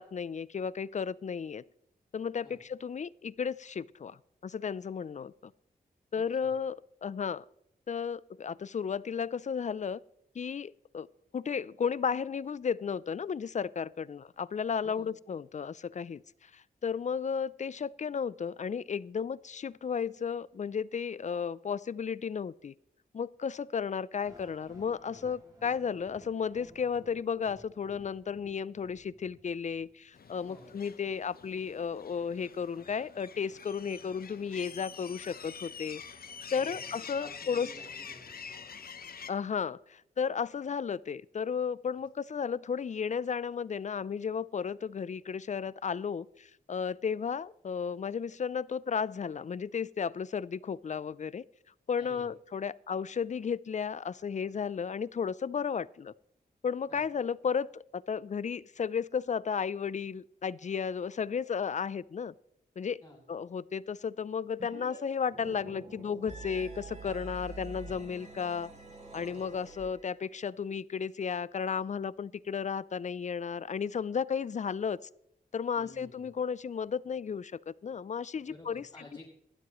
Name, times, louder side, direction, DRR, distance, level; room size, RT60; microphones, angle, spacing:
voice 1, 0.0-1.6 2.1-5.5 6.1-7.4 7.9-10.0 10.3-11.1 11.3-22.7 23.1-36.0 36.5-37.7 39.3-51.4 51.9-56.1 56.6-62.3 62.8-63.0 63.3-68.7 69.1-75.1 75.5-79.0, left 6 dB, 45° left, 21 dB, 0.4 m, -34 dB
voice 2, 6.1-6.6 14.8-15.1 30.5-30.8 36.5-36.9 37.2-38.7 52.0-52.2 56.9-57.0 63.0-63.2 75.7-76.3 78.5-79.2, left 1 dB, 20° left, -4 dB, 3.3 m, -52 dB
sound 1, 24.2-30.2, equal, 25° right, 6.5 m, -56 dB
sound 2, 30.1-39.3, left 6 dB, 65° left, 0.8 m, -46 dB
sound 3, 64.6-65.0 65.2-70.2, right 3 dB, 45° right, 3.6 m, -46 dB
17.5 x 12.5 x 3.1 m, 0.75 s
wide cardioid pair, 80°, 16 cm